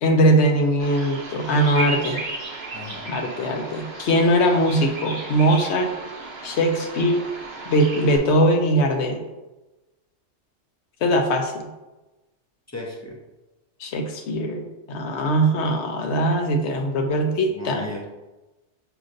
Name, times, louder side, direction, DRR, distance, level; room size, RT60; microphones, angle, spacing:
voice 1, 0.0-2.2 3.1-5.9 6.4-7.2 7.7-9.2 11.0-11.7 13.8-17.8, right 1 dB, 70° left, 4 dB, 0.9 m, -21 dB
Bird vocalization bird call bird song, 0.8-8.2, right 2 dB, 55° right, 0.8 m, -34 dB
voice 2, 2.7-3.1 12.7-13.2 17.5-18.1, left 2 dB, 20° left, -1 dB, 0.4 m, -35 dB
6.3 x 2.9 x 2.5 m, 1.1 s
omnidirectional pair, 1.2 m